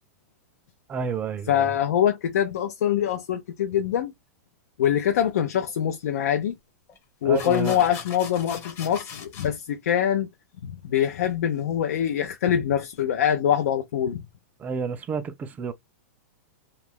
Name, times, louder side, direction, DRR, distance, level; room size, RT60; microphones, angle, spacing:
voice 1, 0.9-1.7 7.2-7.8 14.6-15.7, right 5 dB, 20° right, 0.4 m, -30 dB
voice 2, 1.5-4.1 4.8-6.5 7.2-10.3 10.6-14.2, left 9 dB, 75° left, 0.5 m, -24 dB
sound 1, 5.7-5.8 6.9-7.0 7.3-9.5, left 6 dB, 30° left, 0.8 m, -40 dB
2.4 x 2.1 x 3.2 m
hypercardioid pair, 135°, 8 cm